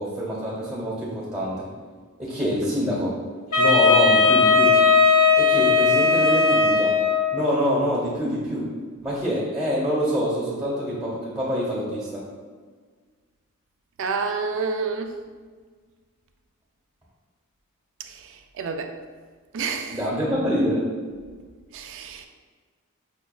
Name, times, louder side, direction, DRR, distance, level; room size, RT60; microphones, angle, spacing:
voice 1, 0.0-1.7 2.2-3.1 3.6-4.8 5.4-6.9 7.3-8.7 9.0-12.2 19.9-20.8, equal, 15° right, -8 dB, 0.7 m, -25 dB
Wind instrument woodwind instrument, 3.5-7.4, left 4 dB, 85° left, 0.9 m, -17 dB
voice 2, 14.0-15.1 18.0-18.9 19.5-20.0 21.7-22.3, right 4 dB, 60° right, 6 dB, 0.3 m, -29 dB
5.9 x 2.3 x 2.3 m, 1.5 s
head